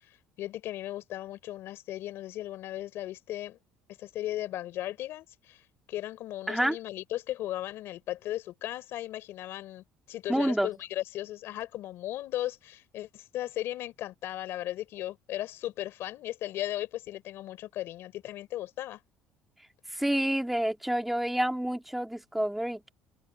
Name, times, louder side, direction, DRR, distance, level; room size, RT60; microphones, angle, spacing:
voice 1, 0.4-3.6 4.0-19.0, left 14 dB, 65° left, 3.7 m, -36 dB
voice 2, 10.3-10.7 19.9-22.9, right 1 dB, 5° right, 2.6 m, -28 dB
open air
cardioid pair, 105°, 4 cm